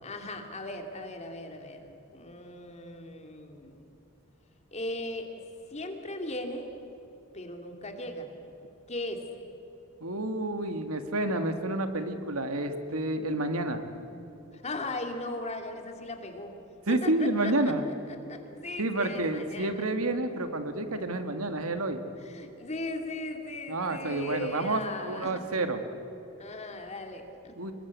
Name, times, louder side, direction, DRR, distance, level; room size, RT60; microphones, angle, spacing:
voice 1, 0.0-3.9 4.7-5.3 5.7-6.7 7.3-8.3 8.9-9.2 14.5-16.5 16.9-17.7 18.3-19.8 22.2-25.4 26.4-27.5, left 1 dB, 30° left, 4 dB, 2.6 m, -38 dB
voice 2, 10.0-13.8 16.9-17.8 18.8-22.0 23.7-25.8 27.6-27.7, right 2 dB, 90° right, 7 dB, 1.9 m, -29 dB
26.0 x 21.5 x 8.4 m, 2.9 s
head